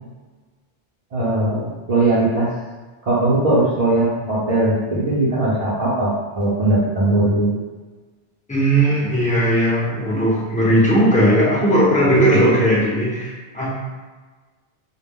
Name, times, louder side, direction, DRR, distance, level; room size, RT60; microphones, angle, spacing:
voice 1, 1.1-2.5 3.0-6.1 6.3-7.6, right 2 dB, 45° right, -10 dB, 0.6 m, -19 dB
voice 2, 8.5-13.9, right 1 dB, 10° left, -7 dB, 0.5 m, -17 dB
2.2 x 2.1 x 3.5 m, 1.4 s
omnidirectional pair, 1.1 m